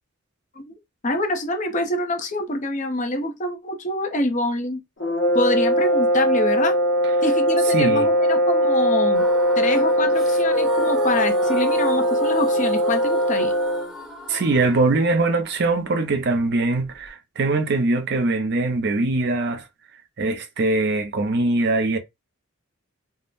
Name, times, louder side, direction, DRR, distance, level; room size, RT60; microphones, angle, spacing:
voice 1, 1.0-4.8 5.3-6.8 7.2-9.2 9.6-13.5, left 2 dB, 35° left, 0.7 m, -26 dB
sound 1, 5.0-13.9, equal, 60° left, 1.1 m, -20 dB
voice 2, 7.7-8.1 14.3-19.7 20.2-22.0, right 2 dB, 50° right, 0.5 m, -22 dB
sound 2, 9.1-17.1, right 1 dB, ahead, 0.9 m, -35 dB
3.5 x 2.1 x 2.4 m
head